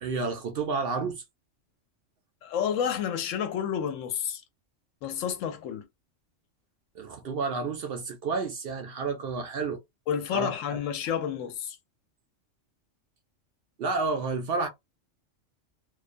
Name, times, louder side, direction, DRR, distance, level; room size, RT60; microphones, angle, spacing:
voice 1, 0.0-1.2 7.0-9.8 10.3-10.8 13.8-14.7, right 4 dB, 60° right, 0.6 m, -30 dB
voice 2, 2.4-4.4 5.0-5.9 10.1-11.8, left 8 dB, 80° left, 1.0 m, -30 dB
2.4 x 2.2 x 2.5 m
omnidirectional pair, 1.3 m